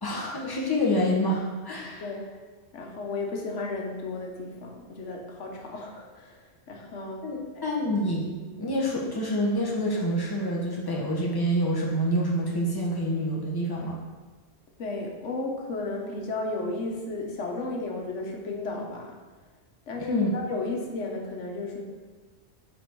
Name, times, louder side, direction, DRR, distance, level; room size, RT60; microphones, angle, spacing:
voice 1, 0.0-2.0 7.2-14.0 20.0-20.3, equal, 20° left, -3 dB, 1.3 m, -27 dB
voice 2, 2.0-2.3 2.7-7.6 14.8-19.1 19.9-21.8, left 2 dB, 85° left, 1 dB, 1.4 m, -34 dB
7.8 x 4.8 x 4.6 m, 1.3 s
omnidirectional pair, 1.2 m